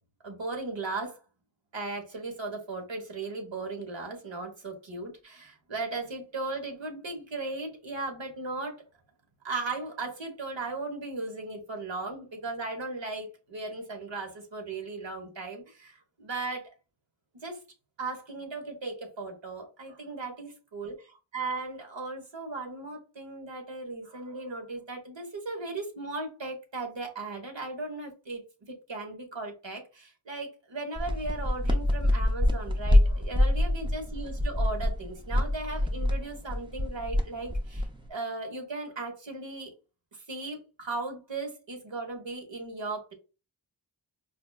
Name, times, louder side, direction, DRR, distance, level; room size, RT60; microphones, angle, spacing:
voice 1, 0.2-1.2 1.7-8.8 9.4-16.7 17.4-17.6 18.0-21.0 21.3-39.7 40.1-43.1, right 3 dB, 70° right, 3 dB, 1.2 m, -37 dB
sound 1, 31.0-38.1, left 1 dB, 10° right, 0.5 m, -26 dB
4.9 x 2.1 x 2.3 m, 0.31 s
wide cardioid pair, 45°, 46 cm